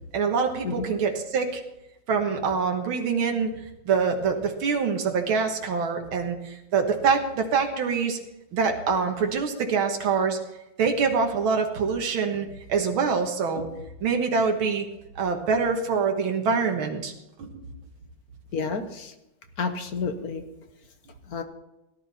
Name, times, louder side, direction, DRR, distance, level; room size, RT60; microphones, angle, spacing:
voice 1, 0.1-1.6 2.1-3.5 3.9-8.2 8.5-10.4 10.8-13.7 14.0-14.9 15.2-17.1 17.4-17.7, right 5 dB, 85° right, 3 dB, 2.2 m, -25 dB
voice 2, 18.5-19.1 19.6-20.4 21.3-21.4, left 5 dB, 55° left, 7 dB, 1.5 m, -30 dB
17.5 x 11.0 x 4.2 m, 0.92 s
omnidirectional pair, 2.2 m